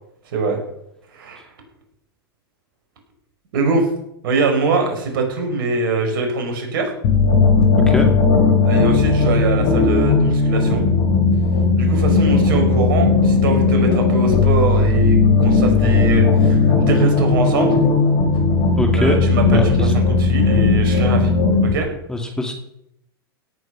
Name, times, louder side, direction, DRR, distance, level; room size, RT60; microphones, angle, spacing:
voice 1, 1.1-1.4 3.5-3.9 4.2-6.9 8.6-10.9 11.8-17.7 18.9-21.3 21.7-21.9, right 4 dB, 60° right, 4 dB, 5.6 m, -23 dB
sound 1, 7.0-21.7, left 4 dB, 50° left, 5.0 m, -16 dB
voice 2, 18.8-19.2 19.4-19.9 22.1-22.5, left 2 dB, 5° left, 3 dB, 2.4 m, -22 dB
17.0 x 9.6 x 6.0 m, 0.77 s
hypercardioid pair, 100°, 13 cm